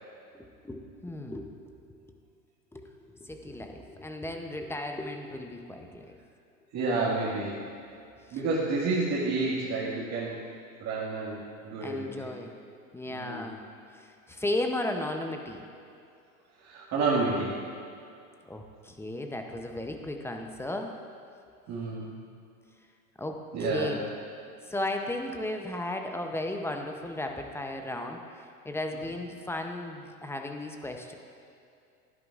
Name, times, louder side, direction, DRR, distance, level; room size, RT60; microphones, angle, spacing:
voice 1, 0.3-1.6 1.9-2.0 2.7-6.2 8.3-8.4 11.8-12.5 12.9-13.6 13.9-15.6 18.5-20.9 23.2-24.1 24.6-31.1, left 1 dB, 5° left, 4 dB, 0.6 m, -35 dB
voice 2, 6.7-7.6 8.3-10.5 10.8-12.3 13.1-13.5 16.6-17.5 21.7-22.1 23.5-23.9, right 3 dB, 40° right, -7 dB, 1.8 m, -30 dB
12.5 x 10.5 x 2.4 m, 2.5 s
hypercardioid pair, 100°, 43 cm